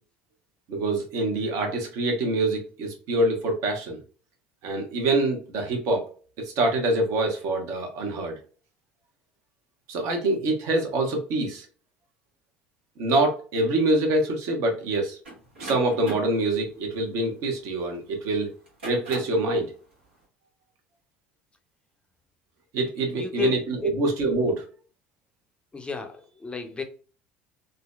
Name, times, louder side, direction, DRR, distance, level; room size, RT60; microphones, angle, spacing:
voice 1, 0.7-4.0 4.6-6.0 6.4-8.4 9.9-11.7 13.0-15.2 15.6-18.5 18.8-19.7 22.7-24.6, right 2 dB, 55° right, 1.0 m, -25 dB
sound 1, 15.2-18.0 18.6-19.5, right 1 dB, 80° right, 1.2 m, -40 dB
voice 2, 23.1-23.9 25.7-26.8, left 5 dB, 15° left, 0.6 m, -33 dB
3.7 x 2.2 x 2.3 m
figure-of-eight pair, 65°, 6 cm